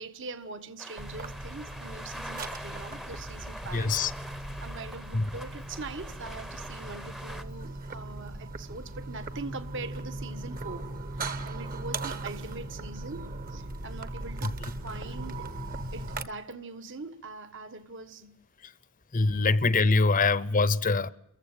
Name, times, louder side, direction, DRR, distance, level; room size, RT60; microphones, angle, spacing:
voice 1, 0.0-4.0 4.6-14.5 14.8-15.5 15.9-18.3 20.1-20.4, right 3 dB, 60° right, 1.5 m, -42 dB
sound 1, 0.8-7.4, equal, ahead, 0.8 m, -44 dB
sound 2, 1.0-16.2, right 2 dB, 40° right, 1.2 m, -38 dB
voice 2, 3.7-4.1 5.1-5.3 14.4-14.5 18.6-18.7 19.1-21.1, left 3 dB, 40° left, 0.8 m, -24 dB
29.0 x 15.0 x 8.9 m
head